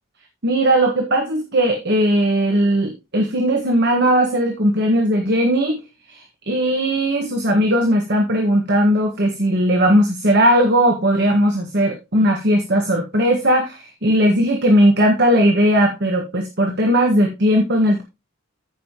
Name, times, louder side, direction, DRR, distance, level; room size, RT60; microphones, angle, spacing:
voice 1, 0.4-5.8 6.1-18.0, equal, 55° right, 3 dB, 1.6 m, -18 dB
14.5 x 5.6 x 2.9 m, 0.23 s
head